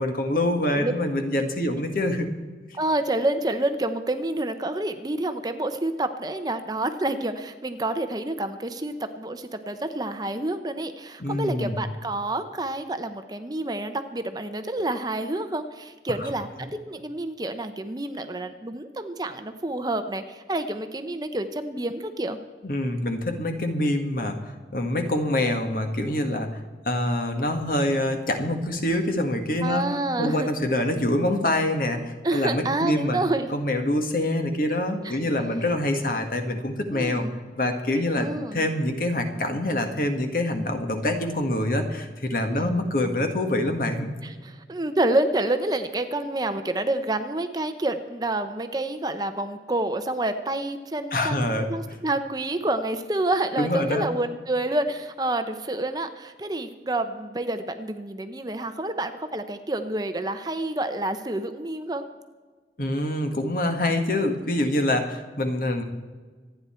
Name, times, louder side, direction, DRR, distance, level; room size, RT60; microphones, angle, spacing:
voice 1, 0.0-2.3 11.2-11.8 22.6-26.6 26.9-29.8 30.2-33.2 33.5-37.2 37.6-44.1 51.1-51.7 53.6-54.1 62.8-65.8, left 1 dB, 50° left, 5 dB, 1.7 m, -25 dB
voice 2, 2.7-22.4 29.6-30.5 32.2-33.5 35.0-35.2 36.9-37.3 38.2-38.7 42.5-42.7 44.2-51.4 51.7-62.1, right 2 dB, 20° right, 9 dB, 0.7 m, -28 dB
26.5 x 9.6 x 4.4 m, 1.4 s
head